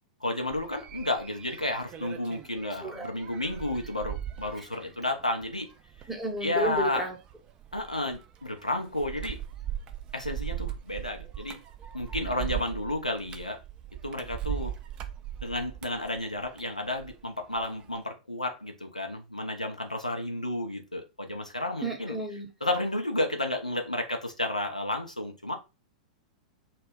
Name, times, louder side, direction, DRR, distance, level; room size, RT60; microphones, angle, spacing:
voice 1, 0.2-5.7 6.4-7.0 7.7-9.4 10.1-11.6 11.9-13.6 14.0-14.8 15.4-22.2 22.6-25.6, left 1 dB, 90° left, 0.5 m, -32 dB
sound 1, 0.5-17.2 17.6-18.0, right 11 dB, 25° right, 0.3 m, -39 dB
voice 2, 6.1-7.2 12.4-12.6 21.8-22.5, right 1 dB, 5° right, 0.8 m, -32 dB
2.2 x 2.0 x 3.4 m
figure-of-eight pair, 100°, 4 cm